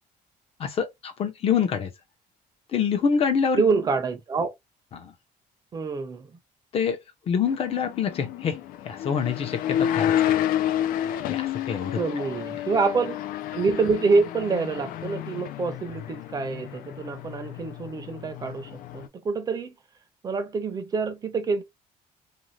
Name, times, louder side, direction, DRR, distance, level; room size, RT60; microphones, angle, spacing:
voice 1, 0.6-1.9 2.7-3.6 4.9-5.1 6.7-7.0 7.3-8.6 8.8-10.4 11.3-12.2, left 7 dB, 40° left, 0.7 m, -26 dB
voice 2, 3.6-4.5 5.7-6.4 11.9-13.2 13.5-19.7 20.2-21.6, right 4 dB, 25° right, 0.6 m, -26 dB
sound 1, 7.5-19.1, left 11 dB, 75° left, 0.4 m, -30 dB
2.6 x 2.2 x 3.1 m
cardioid pair, 155°, 15 cm